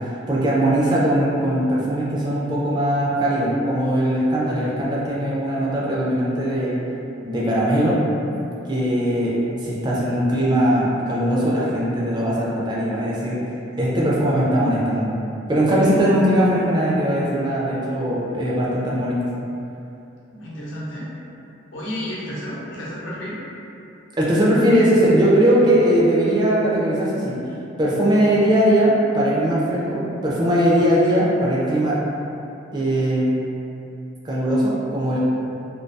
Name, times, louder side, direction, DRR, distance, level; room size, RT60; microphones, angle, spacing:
voice 1, 0.0-6.8 7.2-8.1 8.7-13.4 13.8-15.1 15.5-19.2 24.2-27.4 27.8-32.0 32.7-33.4 34.2-35.2, right 1 dB, 20° right, -7 dB, 0.4 m, -20 dB
voice 2, 20.3-21.1 21.7-23.4, equal, 75° left, -7 dB, 0.6 m, -31 dB
2.3 x 2.2 x 2.6 m, 2.8 s
head